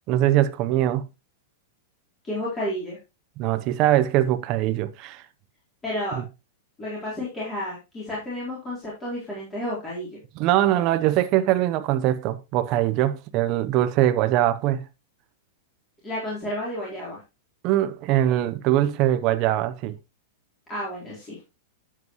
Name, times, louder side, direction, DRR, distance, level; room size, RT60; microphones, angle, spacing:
voice 1, 0.1-1.1 3.4-5.2 6.1-6.2 10.4-14.8 17.6-19.9, right 13 dB, 35° right, 0.7 m, -22 dB
voice 2, 2.2-3.0 5.8-6.2 6.8-10.2 16.0-17.2 20.7-21.4, left 1 dB, 15° left, 3.7 m, -31 dB
9.6 x 7.6 x 3.0 m
supercardioid pair, 165°, 0 cm